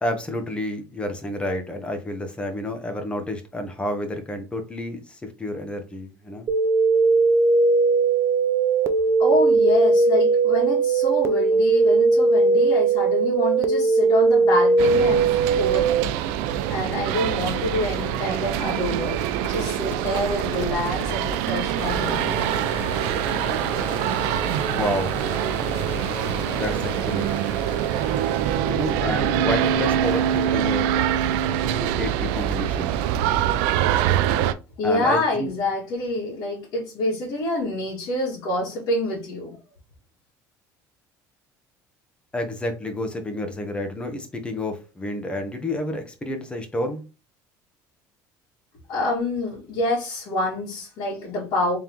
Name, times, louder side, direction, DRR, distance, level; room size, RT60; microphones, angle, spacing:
voice 1, 0.0-6.5 24.6-25.1 26.5-27.3 28.7-30.9 31.7-32.9 34.8-35.5 42.3-47.0, left 1 dB, 15° left, 1.0 m, -30 dB
sound 1, 6.5-16.0, right 3 dB, 35° right, 0.5 m, -19 dB
voice 2, 9.2-15.3 15.6-16.2 16.7-19.2 19.5-22.4 34.8-39.6 48.9-51.8, left 1 dB, 60° left, 1.9 m, -26 dB
sound 2, 14.8-34.5, right 10 dB, 85° right, 0.4 m, -24 dB
sound 3, 18.5-28.5 30.0-30.1, left 5 dB, 30° left, 0.4 m, -36 dB
3.7 x 3.4 x 3.0 m
cardioid pair, 135°, 8 cm